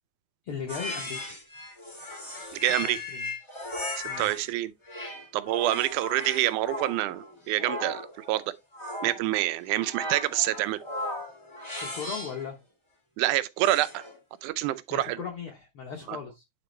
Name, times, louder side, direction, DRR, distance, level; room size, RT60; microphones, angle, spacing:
voice 1, 0.4-1.2 2.8-3.3 4.0-4.3 11.8-12.6 14.9-16.4, left 7 dB, 65° left, 1.4 m, -37 dB
sound 1, 0.7-4.5 4.9-12.5 13.6-14.2, left 1 dB, 25° left, 0.5 m, -37 dB
voice 2, 2.5-3.0 4.2-4.7 5.3-8.4 9.0-10.8 13.2-14.0 14.4-15.2 16.1-16.2, right 15 dB, 85° right, 2.1 m, -27 dB
9.4 x 4.3 x 3.1 m
omnidirectional pair, 3.5 m